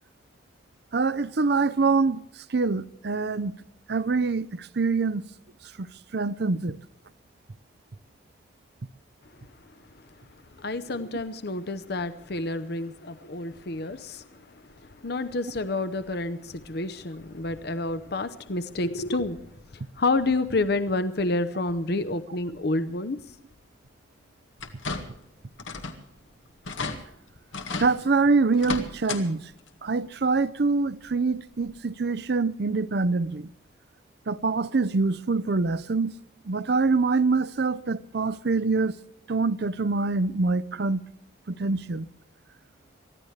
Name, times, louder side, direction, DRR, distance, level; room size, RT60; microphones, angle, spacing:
voice 1, 0.9-2.2 2.5-3.5 3.9-5.2 5.8-5.9 6.1-6.8 27.8-29.4 29.8-33.5 34.3-36.1 36.5-38.9 39.3-41.0 41.5-42.1, right 4 dB, 60° right, 0.6 m, -25 dB
voice 2, 10.6-19.4 19.7-23.2, left 2 dB, 55° left, 0.8 m, -29 dB
sound 1, 24.6-25.3 25.6-26.0 26.3-26.4 26.6-27.0 27.5-27.9 28.5-29.2 29.6-29.7 31.1-31.2 31.7-31.8, left 3 dB, 90° left, 1.9 m, -33 dB
24.0 x 15.0 x 3.3 m
head